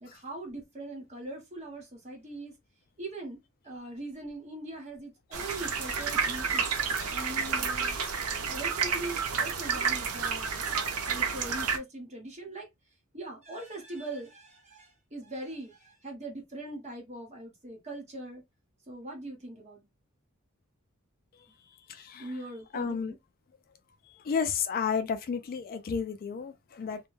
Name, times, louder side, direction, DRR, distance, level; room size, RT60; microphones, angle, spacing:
voice 1, 0.0-2.6 3.0-6.7 7.1-8.0 8.5-12.7 13.1-18.4 18.9-19.9 21.5-21.6 22.2-23.2, right 2 dB, 30° right, 1.0 m, -41 dB
sound 1, 5.3-11.8, right 6 dB, 85° right, 0.5 m, -30 dB
voice 2, 6.2-7.2 21.9-22.3 22.7-23.1 24.1-27.0, left 6 dB, 45° left, 0.3 m, -33 dB
2.2 x 2.1 x 3.0 m
head